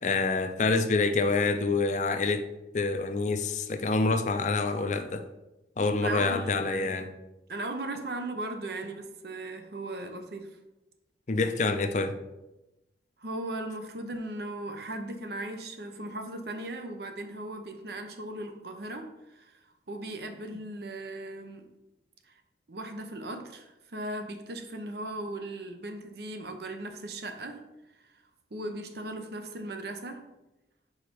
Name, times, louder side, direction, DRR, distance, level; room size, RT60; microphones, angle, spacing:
voice 1, 0.0-2.4 2.7-5.2 5.8-7.1 11.3-12.1, left 3 dB, 40° left, 7 dB, 0.5 m, -27 dB
voice 2, 6.0-6.9 7.5-10.5 13.2-19.6 19.9-21.7 22.7-27.6 28.5-30.3, right 2 dB, 65° right, 6 dB, 0.7 m, -37 dB
4.7 x 4.5 x 5.1 m, 0.98 s
head